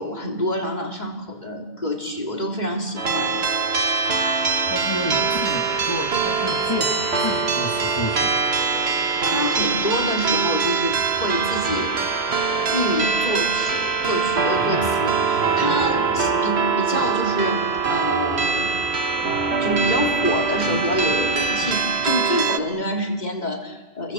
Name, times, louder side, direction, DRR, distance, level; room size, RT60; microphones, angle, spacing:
voice 1, 0.0-3.4 9.2-12.1 12.7-18.7 19.6-24.1, equal, 40° left, 1 dB, 3.7 m, -27 dB
sound 1, 3.0-22.6, right 5 dB, 75° right, 1.6 m, -23 dB
voice 2, 4.6-8.3, left 1 dB, 25° left, -1 dB, 2.4 m, -30 dB
sound 2, 4.6-21.8, equal, 35° right, 8.0 m, -36 dB
29.0 x 23.0 x 7.6 m, 1.2 s
omnidirectional pair, 1.1 m